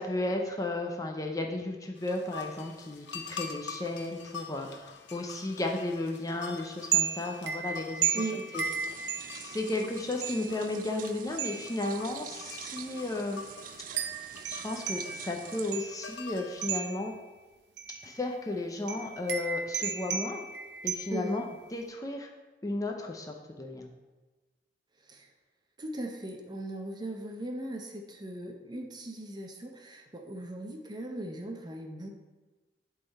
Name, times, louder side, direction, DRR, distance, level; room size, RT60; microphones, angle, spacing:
voice 1, 0.0-13.4 14.5-17.1 18.0-20.4 20.8-21.5 21.7-22.3 22.6-23.9, left 2 dB, 20° left, 2 dB, 0.6 m, -34 dB
sound 1, 2.0-16.8, left 5 dB, 90° left, 0.7 m, -46 dB
sound 2, 6.9-9.7 10.2-10.7 11.4-11.9 12.6-12.8 14.0-16.1 16.6-17.2 17.8-18.2 18.9-21.4, right 8 dB, 75° right, 0.7 m, -34 dB
voice 2, 8.1-8.5 21.1-21.4 25.1-25.3 25.8-32.1, right 1 dB, 25° right, 3 dB, 0.7 m, -38 dB
sound 3, 8.5-15.8, right 10 dB, 50° right, 0.3 m, -46 dB
11.0 x 3.9 x 4.1 m, 1.2 s
head